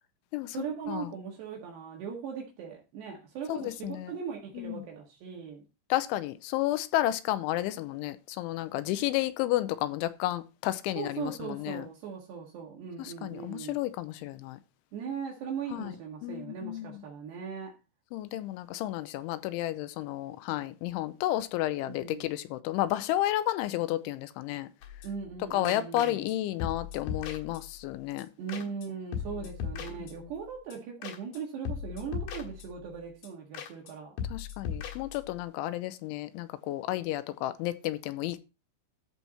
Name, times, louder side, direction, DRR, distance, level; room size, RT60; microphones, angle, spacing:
voice 1, 0.5-5.6 11.0-13.8 14.9-17.8 21.9-22.3 25.0-26.2 28.4-34.2, right 6 dB, 65° right, 3.6 m, -39 dB
voice 2, 3.5-4.1 4.6-4.8 5.9-11.9 13.0-14.6 15.7-15.9 16.2-17.0 18.1-24.7 25.5-28.3 30.0-30.1 34.3-38.4, left 15 dB, 90° left, 3.1 m, -32 dB
sound 1, 24.8-25.4 25.7-26.3 26.6-27.9 28.2-28.3 28.5-28.9 29.1-30.4 30.7-30.8 31.0-31.4 31.7-32.9 33.2-33.3 33.5-33.9 34.2-35.4, left 7 dB, 65° left, 3.1 m, -38 dB
13.5 x 4.6 x 4.1 m
omnidirectional pair, 5.4 m